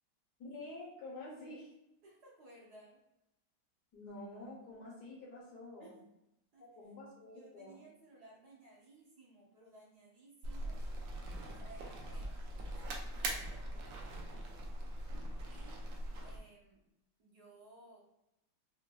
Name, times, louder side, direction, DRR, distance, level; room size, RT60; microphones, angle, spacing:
voice 1, 0.4-1.7 3.9-6.0 6.6-7.8, left 2 dB, 60° left, -4 dB, 1.3 m, -48 dB
voice 2, 2.0-3.0 5.8-6.0 6.5-6.9 7.3-10.9 11.3-12.3 12.7-14.7 15.5-15.8 16.2-16.8 17.2-18.0, right 2 dB, 60° right, -5 dB, 1.4 m, -59 dB
sound 1, 10.4-16.4, right 1 dB, 80° right, 1.3 m, -41 dB
4.9 x 2.5 x 2.2 m, 0.88 s
omnidirectional pair, 2.1 m